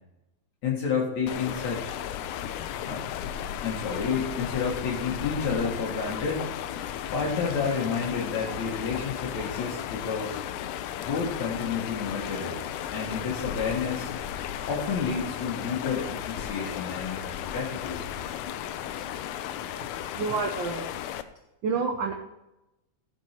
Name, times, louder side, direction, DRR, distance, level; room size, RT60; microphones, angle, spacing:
voice 1, 0.6-1.9 2.9-3.0 3.6-6.5 7.1-10.4 11.0-12.6 12.9-14.1 14.7-18.0, left 5 dB, 70° left, -2 dB, 2.9 m, -30 dB
sound 1, 1.3-21.2, left 10 dB, 90° left, 2.1 m, -35 dB
voice 2, 20.1-20.8 21.6-22.1, right 5 dB, 80° right, 4 dB, 1.0 m, -28 dB
15.5 x 6.2 x 4.4 m, 0.95 s
omnidirectional pair, 3.4 m